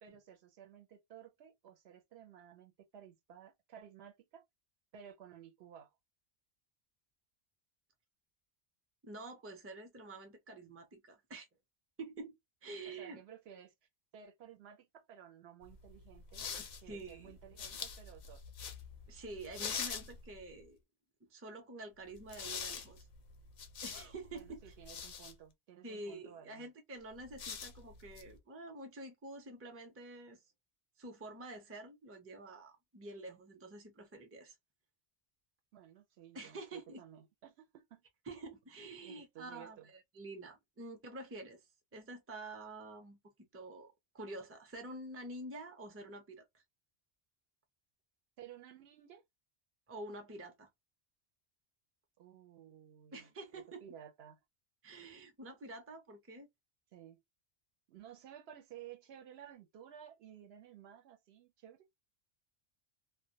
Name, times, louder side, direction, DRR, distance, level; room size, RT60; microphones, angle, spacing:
voice 1, 0.0-4.4 4.9-5.9 12.9-13.7 14.1-16.5 16.8-18.4 24.3-26.7 35.7-38.0 39.0-39.9 48.4-49.2 52.2-53.3 53.8-54.4 56.9-57.2 57.9-61.9, right 9 dB, 75° right, 0.8 m, -55 dB
voice 2, 9.0-11.5 12.0-12.3 12.6-13.2 16.5-17.4 19.1-20.8 21.3-23.1 23.8-24.7 25.8-30.4 31.0-34.6 36.3-37.0 38.3-41.7 41.9-46.4 49.9-50.7 53.1-53.8 54.8-56.5, right 2 dB, 20° right, 0.4 m, -48 dB
sound 1, 15.6-20.6 22.1-25.3 27.1-28.4, left 6 dB, 55° left, 0.5 m, -45 dB
2.2 x 2.1 x 2.7 m
omnidirectional pair, 1.1 m